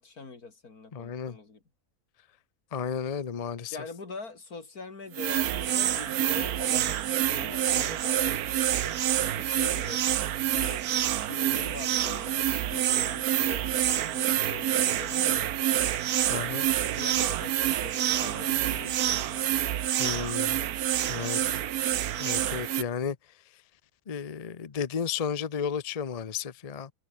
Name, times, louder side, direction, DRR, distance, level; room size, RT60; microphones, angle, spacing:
voice 1, 0.0-1.6 3.7-10.0 10.5-10.9 11.3-15.5 16.2-19.8, left 4 dB, 80° left, 3.7 m, -43 dB
voice 2, 0.9-1.4 2.7-3.8 16.3-16.6 20.0-20.6 21.1-21.6 22.2-23.2 24.1-26.9, left 6 dB, 35° left, 0.7 m, -33 dB
sound 1, 5.1-22.8, right 11 dB, 80° right, 1.3 m, -27 dB
omnidirectional pair, 1.6 m